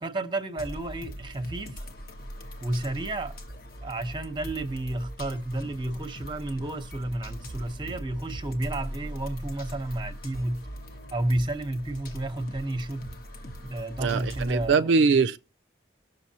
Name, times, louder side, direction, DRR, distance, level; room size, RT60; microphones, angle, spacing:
voice 1, 0.0-1.8 2.6-3.4 3.8-10.7 11.1-13.2 13.6-14.9, right 1 dB, 25° right, 0.9 m, -31 dB
sound 1, 0.6-14.8, equal, 55° left, 1.1 m, -40 dB
voice 2, 14.0-15.4, right 4 dB, 85° right, 0.4 m, -22 dB
19.0 x 6.6 x 2.8 m
head